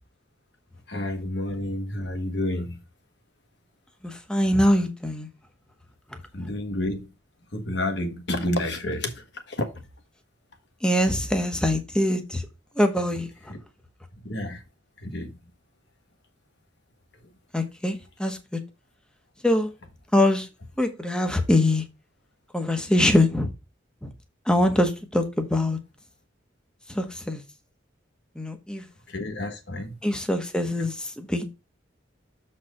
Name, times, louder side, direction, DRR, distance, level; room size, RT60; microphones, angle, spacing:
voice 1, 0.9-2.8 6.3-7.1 7.5-9.7 13.5-13.6 14.2-14.6 15.0-15.3 29.1-30.0, left 1 dB, 60° left, 1.5 m, -30 dB
voice 2, 4.0-5.3 10.8-12.5 12.8-13.5 17.5-18.6 19.4-19.7 20.1-20.5 20.8-21.8 22.5-23.5 24.0-24.1 24.5-25.8 26.9-27.4 28.4-28.8 30.0-31.4, left 1 dB, 5° left, 1.0 m, -23 dB
7.0 x 4.4 x 4.9 m
head